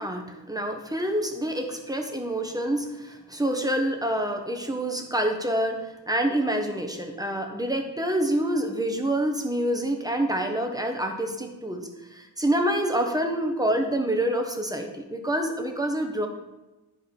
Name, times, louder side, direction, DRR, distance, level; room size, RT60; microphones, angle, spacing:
voice 1, 0.0-11.8 12.1-16.3, right 1 dB, 10° right, 3 dB, 1.3 m, -27 dB
11.5 x 5.0 x 5.5 m, 1.1 s
wide cardioid pair, 85°, 40 cm